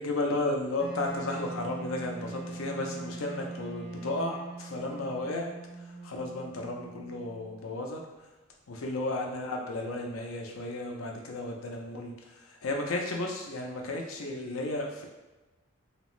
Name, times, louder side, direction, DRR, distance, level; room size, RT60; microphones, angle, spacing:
voice 1, 0.0-5.5 5.8-8.0 8.7-15.1, left 2 dB, 85° left, 1 dB, 0.5 m, -34 dB
Wind instrument woodwind instrument, 0.8-7.7, right 2 dB, 55° right, 0.7 m, -42 dB
2.9 x 2.0 x 3.0 m, 1.1 s
head